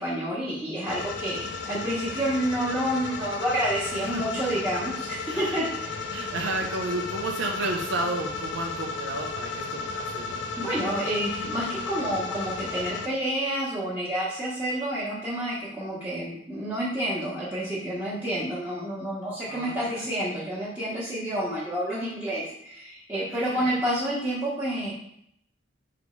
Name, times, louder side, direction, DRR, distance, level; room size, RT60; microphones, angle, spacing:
voice 1, 0.0-6.2 10.6-25.0, right 1 dB, 10° right, -10 dB, 0.9 m, -29 dB
sound 1, 0.9-13.1, left 4 dB, 65° left, 0.4 m, -34 dB
voice 2, 5.3-5.6 6.1-10.5 19.5-19.9 23.3-23.7, right 2 dB, 80° right, 1 dB, 0.5 m, -32 dB
3.8 x 3.4 x 3.1 m, 0.73 s
head